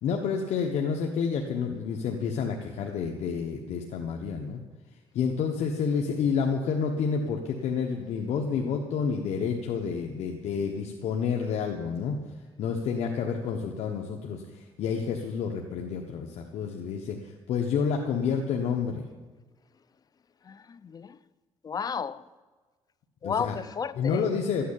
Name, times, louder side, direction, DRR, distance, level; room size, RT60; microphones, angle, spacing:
voice 1, 0.0-4.6 5.1-12.2 12.6-19.1 23.2-23.6 23.9-24.6, left 6 dB, 80° left, 1.3 m, -29 dB
voice 2, 20.4-21.2 21.6-22.3 23.2-24.2, left 6 dB, 35° left, 0.6 m, -33 dB
12.5 x 9.3 x 8.9 m
cardioid pair, 105°, 11 cm